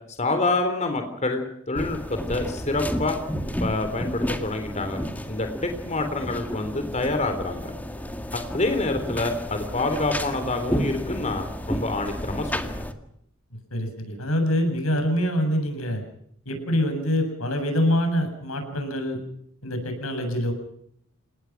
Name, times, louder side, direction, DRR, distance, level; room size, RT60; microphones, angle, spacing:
voice 1, 0.1-3.2 3.6-7.7 8.3-12.7, left 2 dB, 35° left, 6 dB, 3.6 m, -27 dB
sound 1, 1.7-12.9, equal, 10° left, 2.0 m, -32 dB
voice 2, 13.7-16.0 16.5-19.2 19.6-20.5, equal, 85° left, 6 dB, 7.5 m, -25 dB
29.5 x 19.0 x 6.1 m, 0.71 s
head